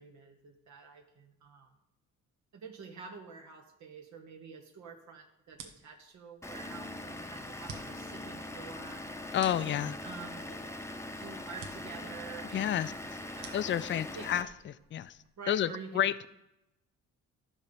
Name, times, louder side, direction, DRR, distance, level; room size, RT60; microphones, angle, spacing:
voice 1, 0.0-1.7 2.5-9.0 9.6-10.7 11.1-13.0 13.4-13.7 13.9-14.4 15.4-16.0, right 5 dB, 70° right, 3 dB, 1.2 m, -48 dB
sound 1, 5.5-15.4, right 5 dB, 90° right, 1.1 m, -53 dB
Vehicle / Engine, 6.4-14.4, left 1 dB, 10° left, 0.7 m, -42 dB
voice 2, 9.3-9.9 12.5-12.9 13.5-14.5 14.9-15.1 15.5-15.7 15.9-16.3, left 10 dB, 40° left, 15 dB, 0.4 m, -29 dB
12.5 x 5.4 x 5.2 m, 0.91 s
cardioid pair, 90°, 30 cm